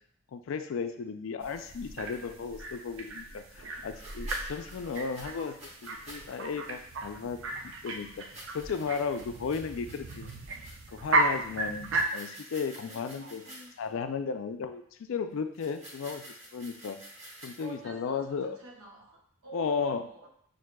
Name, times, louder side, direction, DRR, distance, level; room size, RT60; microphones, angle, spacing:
voice 1, 0.3-5.5 5.8-7.4 7.8-8.2 8.5-10.3 10.9-13.4 13.8-17.0 17.4-18.6 19.5-20.0, left 5 dB, 70° left, 8 dB, 0.3 m, -34 dB
sound 1, 1.4-12.0, right 2 dB, 65° right, 0.5 m, -35 dB
sound 2, 2.1-2.2 3.9-6.4 6.7-6.9 8.1-10.9 11.7-13.9 15.5-17.8, right 1 dB, 30° right, 1.1 m, -49 dB
voice 2, 12.8-13.9 17.6-20.3, right 4 dB, 90° right, -3 dB, 1.0 m, -49 dB
5.9 x 2.6 x 2.2 m, 0.64 s
head